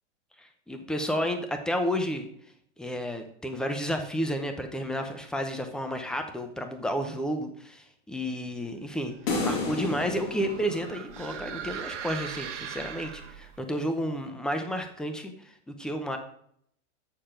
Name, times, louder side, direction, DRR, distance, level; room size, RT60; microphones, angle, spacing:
voice 1, 0.7-2.3 2.8-9.1 9.4-15.3 15.7-16.2, equal, ahead, 6 dB, 0.7 m, -31 dB
sound 1, 9.1-13.6, right 8 dB, 75° right, 1.4 m, -40 dB
sound 2, 9.3-11.7, left 3 dB, 55° left, 2.5 m, -32 dB
7.4 x 6.8 x 5.0 m, 0.67 s
hypercardioid pair, 140°, 37 cm